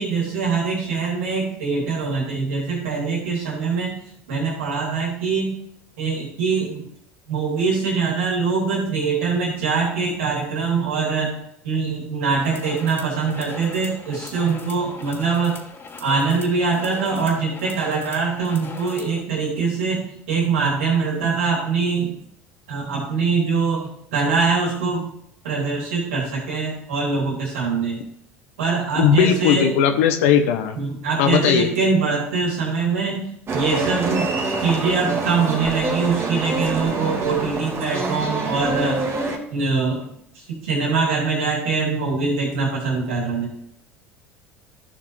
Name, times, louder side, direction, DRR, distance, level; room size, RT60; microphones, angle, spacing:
voice 1, 0.0-5.6 6.0-6.8 7.3-11.4 11.6-15.6 16.0-22.1 22.7-25.1 25.4-28.0 28.6-29.7 30.7-34.3 34.6-39.0 39.5-40.0 40.3-43.5, right 4 dB, 75° right, -2 dB, 3.1 m, -23 dB
sound 1, 12.3-19.2, left 4 dB, 30° left, 1.8 m, -39 dB
voice 2, 29.0-30.8 31.2-31.7, left 8 dB, 70° left, 7 dB, 0.8 m, -17 dB
sound 2, 33.5-39.4, right 3 dB, 35° right, 1.8 m, -26 dB
14.5 x 5.8 x 3.2 m, 0.73 s
hypercardioid pair, 70°, 7 cm